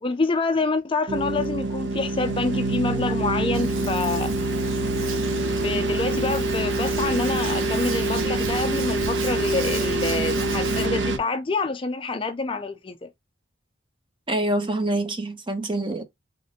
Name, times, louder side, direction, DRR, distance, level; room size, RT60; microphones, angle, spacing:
voice 1, 0.0-4.3 5.6-13.1, left 3 dB, 25° left, 0.4 m, -27 dB
sound 1, 1.1-11.2, right 2 dB, 60° right, 0.9 m, -25 dB
Hands, 3.5-10.9, right 4 dB, 90° right, 1.2 m, -37 dB
voice 2, 14.3-16.0, right 1 dB, 25° right, 0.8 m, -26 dB
4.0 x 3.6 x 3.6 m
head